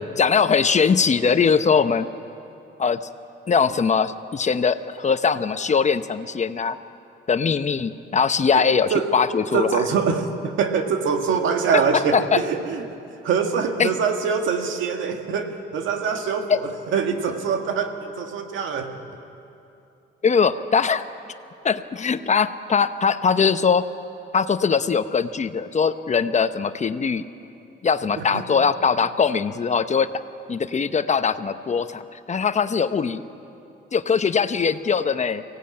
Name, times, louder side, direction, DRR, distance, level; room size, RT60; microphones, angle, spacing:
voice 1, 0.2-2.1 2.8-3.0 3.5-6.8 7.3-9.7 11.7-12.4 13.8-13.9 16.5-16.6 20.2-21.0 21.6-23.9 24.3-27.2 27.8-30.1 30.5-33.2 33.9-35.4, left 6 dB, 35° left, 11 dB, 0.9 m, -21 dB
voice 2, 9.5-12.8 13.2-19.0 28.2-28.4, right 6 dB, 80° right, 4 dB, 2.0 m, -24 dB
23.5 x 17.0 x 8.8 m, 2.8 s
cardioid pair, 90°, 20 cm